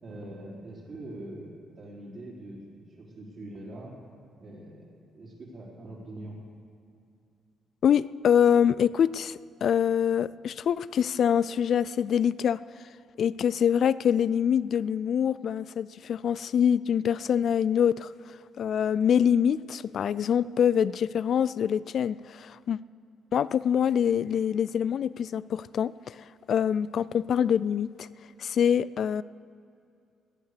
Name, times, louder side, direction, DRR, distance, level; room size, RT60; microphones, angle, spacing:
voice 1, 0.0-4.0 4.4-4.8 5.1-6.4, right 1 dB, 50° right, -6 dB, 4.1 m, -43 dB
voice 2, 7.8-12.6 13.2-18.1 18.6-22.8 23.3-26.2 26.5-28.1 28.4-29.2, left 8 dB, 60° left, 18 dB, 0.3 m, -25 dB
18.5 x 9.4 x 6.7 m, 2.5 s
cardioid pair, 90°, 0 cm